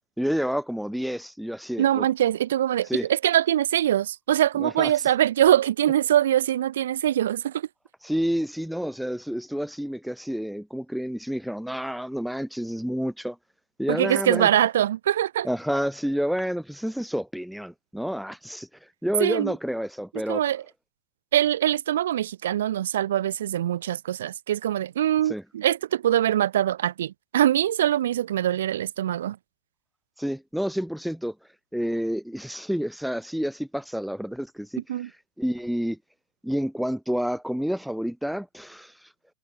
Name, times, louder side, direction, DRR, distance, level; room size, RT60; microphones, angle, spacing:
voice 1, 0.2-2.1 2.9-3.1 4.6-4.9 8.0-13.4 13.8-14.5 15.4-18.7 19.0-20.4 25.3-25.4 30.2-31.3 31.7-34.8 35.4-36.0 36.4-38.9, equal, ahead, 1.3 m, -29 dB
voice 2, 1.8-7.7 13.9-15.5 19.2-19.5 20.3-20.6 21.3-29.4 34.9-35.1, right 11 dB, 60° right, 1.2 m, -23 dB
figure-of-eight pair, 90°, 0 cm